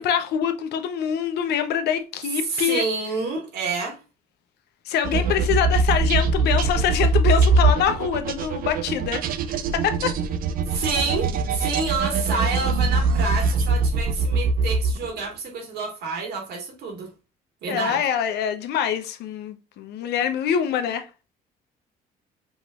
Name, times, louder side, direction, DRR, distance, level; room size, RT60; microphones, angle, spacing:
voice 1, 0.0-2.8 4.9-9.2 9.7-10.2 17.7-21.1, left 8 dB, 75° left, 0.8 m, -24 dB
voice 2, 2.4-4.0 10.7-17.1 17.6-18.0, right 4 dB, 75° right, 1.9 m, -28 dB
sound 1, 5.0-15.2, right 3 dB, 60° right, 0.5 m, -22 dB
5.2 x 3.1 x 2.4 m
cardioid pair, 110°, 17 cm